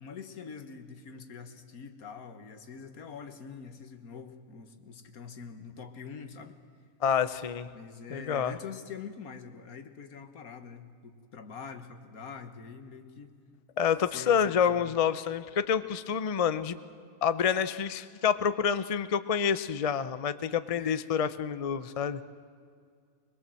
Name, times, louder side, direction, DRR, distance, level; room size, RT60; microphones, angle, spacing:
voice 1, 0.0-6.6 7.7-13.3 14.1-14.9 20.8-21.0, left 6 dB, 75° left, 8 dB, 1.8 m, -45 dB
voice 2, 7.0-7.7 8.1-8.6 13.8-16.8 17.2-22.2, left 7 dB, 45° left, 13 dB, 0.4 m, -28 dB
22.5 x 21.5 x 7.6 m, 2.2 s
omnidirectional pair, 1.5 m